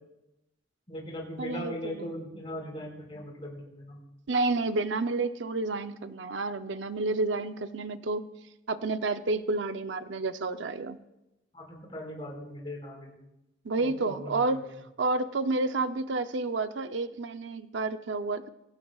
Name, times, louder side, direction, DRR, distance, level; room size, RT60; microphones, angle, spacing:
voice 1, 0.9-4.0 11.5-13.2 13.8-14.6, left 1 dB, 30° left, -2 dB, 5.2 m, -39 dB
voice 2, 1.4-2.1 4.3-8.2 8.7-11.0 13.6-14.6 15.0-18.5, right 3 dB, 70° right, 10 dB, 0.6 m, -30 dB
23.5 x 17.0 x 2.4 m, 0.93 s
head